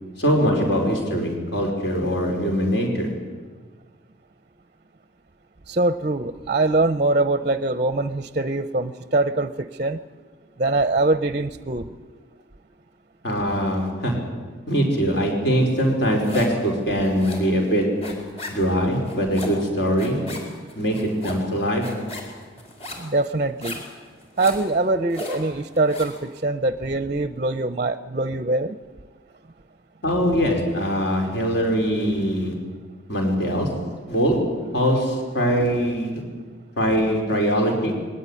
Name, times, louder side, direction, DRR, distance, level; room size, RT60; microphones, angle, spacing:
voice 1, 0.2-3.1 13.2-14.2 14.7-18.0 18.5-20.3 20.8-21.9 30.0-32.5 33.1-33.8 34.1-36.2 36.8-37.9, equal, 60° left, 1 dB, 5.0 m, -22 dB
voice 2, 5.7-10.0 10.6-11.9 23.0-23.8 24.4-28.8, right 2 dB, 35° right, 12 dB, 0.6 m, -23 dB
sound 1, 15.8-16.6 16.9-26.2, left 1 dB, 30° left, 4.3 m, -37 dB
21.5 x 17.5 x 9.9 m, 1.5 s
head